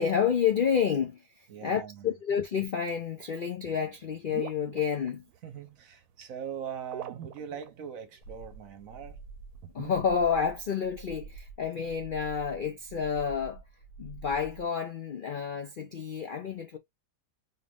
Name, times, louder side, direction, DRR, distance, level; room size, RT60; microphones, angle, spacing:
voice 1, 0.0-5.2 9.7-13.6 14.0-16.8, left 7 dB, 60° left, 0.5 m, -29 dB
voice 2, 1.5-2.1 5.4-9.2, right 8 dB, 60° right, 1.2 m, -41 dB
sound 1, 3.9-5.6 6.9-7.9 8.4-8.5 9.5-10.1, right 11 dB, 80° right, 1.2 m, -42 dB
sound 2, 8.2-14.7, right 4 dB, 90° left, 1.5 m, -47 dB
4.2 x 2.5 x 3.4 m
omnidirectional pair, 1.7 m